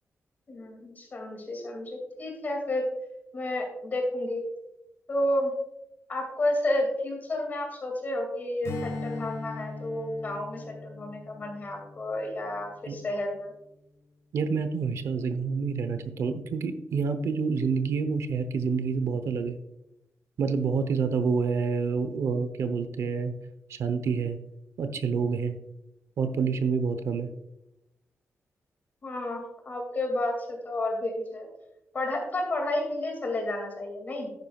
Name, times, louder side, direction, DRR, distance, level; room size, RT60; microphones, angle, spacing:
voice 1, 0.5-2.9 3.3-4.4 5.1-5.5 6.1-13.5 29.0-31.5 31.9-34.3, left 1 dB, 40° left, 2 dB, 2.4 m, -31 dB
Strum, 8.6-13.4, left 3 dB, 85° left, 1.8 m, -40 dB
voice 2, 14.3-19.6 20.4-23.3 23.7-24.4 24.8-25.6 26.2-27.3, right 5 dB, 80° right, 9 dB, 0.8 m, -28 dB
11.0 x 9.4 x 2.4 m, 0.89 s
wide cardioid pair, 175°, 5 cm